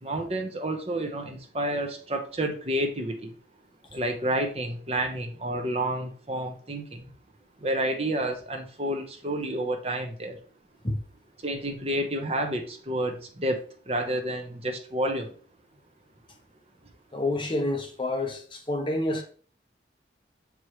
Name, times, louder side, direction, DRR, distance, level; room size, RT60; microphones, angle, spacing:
voice 1, 0.0-3.3 3.9-7.1 7.6-10.4 11.4-15.3, right 1 dB, 35° right, 0.9 m, -30 dB
voice 2, 17.1-19.2, left 1 dB, 30° left, 1.0 m, -28 dB
7.1 x 4.8 x 3.1 m
head